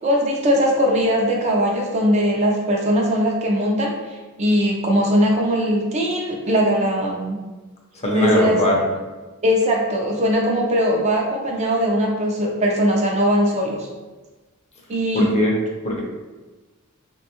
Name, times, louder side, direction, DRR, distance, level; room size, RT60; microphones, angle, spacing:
voice 1, 0.0-7.4 8.1-8.6 9.4-13.9 14.9-15.3, equal, 30° right, -1 dB, 0.4 m, -20 dB
voice 2, 7.9-8.9 15.1-15.5 15.8-16.0, left 1 dB, 30° left, -2 dB, 0.6 m, -20 dB
3.4 x 2.2 x 2.9 m, 1.2 s
head